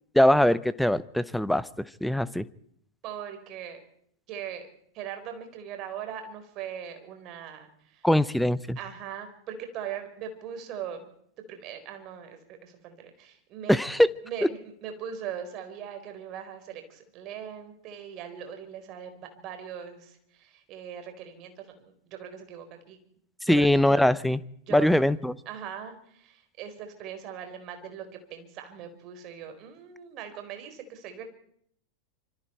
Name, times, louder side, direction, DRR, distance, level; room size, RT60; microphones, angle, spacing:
voice 1, 0.1-1.7 2.0-2.4 8.0-8.8 13.7-14.1 23.5-24.4 24.7-25.4, left 1 dB, ahead, 18 dB, 0.8 m, -22 dB
voice 2, 3.0-3.8 4.3-4.7 4.9-8.1 8.8-11.1 11.5-13.8 14.2-23.0 23.5-24.1 24.7-24.9 25.5-31.3, right 8 dB, 40° right, 7 dB, 4.4 m, -40 dB
26.0 x 25.5 x 4.5 m, 0.67 s
figure-of-eight pair, 90°, 0 cm